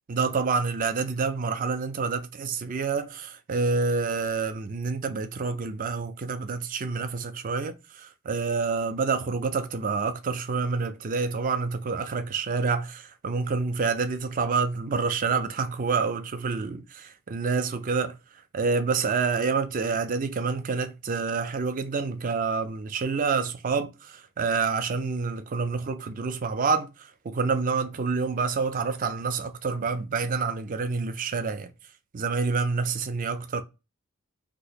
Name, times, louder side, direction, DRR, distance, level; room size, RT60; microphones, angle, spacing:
voice 1, 0.1-18.2 18.5-31.7 32.1-33.6, right 4 dB, 40° right, 0.4 m, -28 dB
2.9 x 2.1 x 4.1 m
head